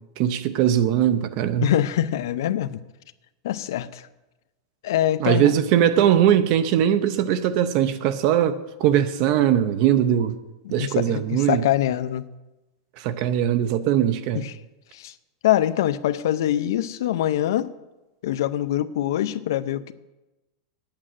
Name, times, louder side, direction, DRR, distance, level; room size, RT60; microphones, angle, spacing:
voice 1, 0.2-1.7 5.2-10.4 10.7-11.6 13.0-14.4, right 10 dB, 35° right, 0.5 m, -20 dB
voice 2, 1.6-2.8 3.4-4.1 4.8-5.5 10.6-12.3 14.3-14.6 14.9-15.1 15.4-17.7 18.2-19.9, left 12 dB, 60° left, 0.6 m, -24 dB
9.7 x 8.7 x 7.6 m
supercardioid pair, 180°, 2 cm